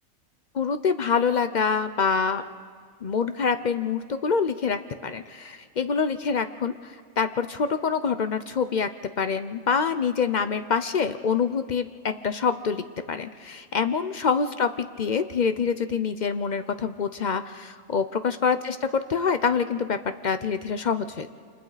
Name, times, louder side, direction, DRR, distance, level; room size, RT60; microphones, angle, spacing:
voice 1, 0.5-2.4 3.0-8.9 9.2-18.8 19.1-20.0 20.2-21.3, left 6 dB, 55° left, 10 dB, 0.5 m, -26 dB
29.5 x 26.5 x 4.0 m, 2.1 s
omnidirectional pair, 1.5 m